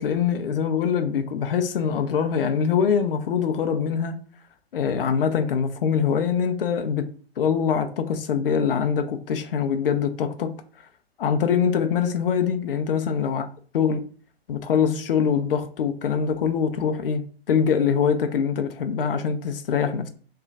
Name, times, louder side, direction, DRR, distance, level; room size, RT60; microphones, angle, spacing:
voice 1, 0.0-4.2 4.7-7.1 7.4-10.5 11.2-13.4 13.7-14.0 14.5-20.1, left 7 dB, 60° left, 0.5 m, -23 dB
3.2 x 2.2 x 3.8 m
figure-of-eight pair, 125°, 32 cm